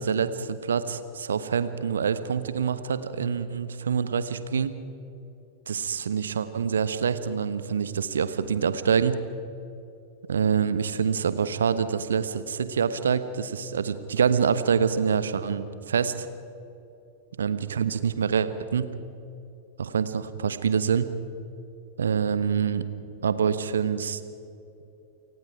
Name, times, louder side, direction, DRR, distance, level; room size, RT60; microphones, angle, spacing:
voice 1, 0.0-4.8 5.7-9.2 10.3-16.3 17.4-18.9 19.8-21.1 22.0-22.8 23.2-24.2, right 7 dB, 70° right, 13 dB, 1.2 m, -26 dB
29.0 x 19.0 x 4.8 m, 2.8 s
figure-of-eight pair, 90°, 0 cm